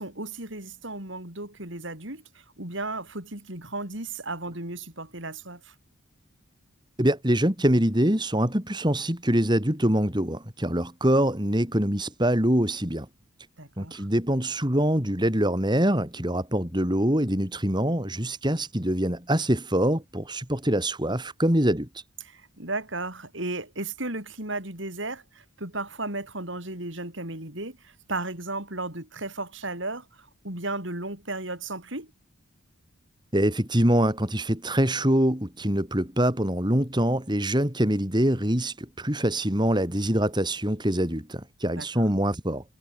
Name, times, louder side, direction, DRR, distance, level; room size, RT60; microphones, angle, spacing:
voice 1, 0.0-2.2 2.6-5.7 13.6-14.1 22.2-32.1 41.8-42.1, right 2 dB, 60° right, 5.6 m, -35 dB
voice 2, 7.0-13.1 13.8-22.0 33.3-42.6, right 1 dB, 20° right, 3.5 m, -24 dB
head